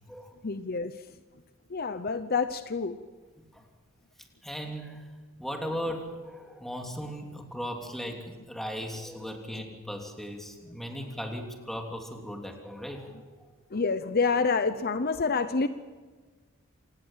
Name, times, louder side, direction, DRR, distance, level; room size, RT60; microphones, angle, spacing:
voice 1, 0.4-1.0 1.7-3.0 9.5-9.6 11.0-11.1 13.7-15.7, left 4 dB, 50° left, 11 dB, 0.8 m, -28 dB
voice 2, 4.4-5.1 5.4-13.2, equal, ahead, 2 dB, 3.1 m, -37 dB
27.5 x 19.0 x 7.5 m, 1.4 s
head